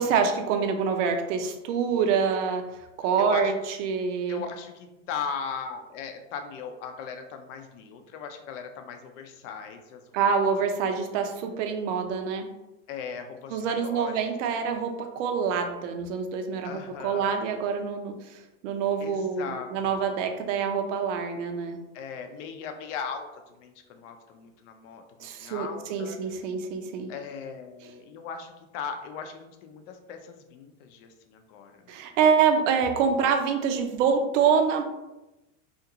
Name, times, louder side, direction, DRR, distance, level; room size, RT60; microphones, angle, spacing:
voice 1, 0.0-2.7 3.0-3.5 3.8-4.4 10.1-12.5 13.5-21.8 25.2-27.1 31.9-34.8, right 6 dB, 65° right, 6 dB, 0.6 m, -26 dB
voice 2, 3.2-3.5 4.3-10.3 12.9-14.2 14.5-14.7 16.6-17.3 19.0-20.0 21.9-26.2 27.1-32.0, left 6 dB, 65° left, 6 dB, 0.6 m, -38 dB
2.5 x 2.4 x 2.8 m, 0.98 s
supercardioid pair, 115°, 40 cm